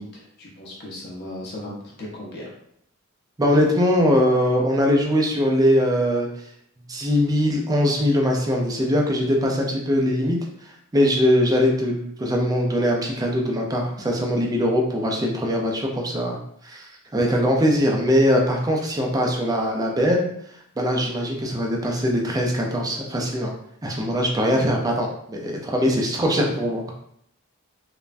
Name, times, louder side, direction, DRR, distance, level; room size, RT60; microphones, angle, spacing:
voice 1, 0.0-2.5 25.8-25.9, left 1 dB, 50° left, -3 dB, 0.7 m, -37 dB
voice 2, 3.4-6.3 6.9-10.4 10.6-20.3 20.8-23.5 23.8-26.9, equal, 15° right, 0 dB, 0.4 m, -21 dB
3.2 x 2.1 x 2.5 m, 0.70 s
head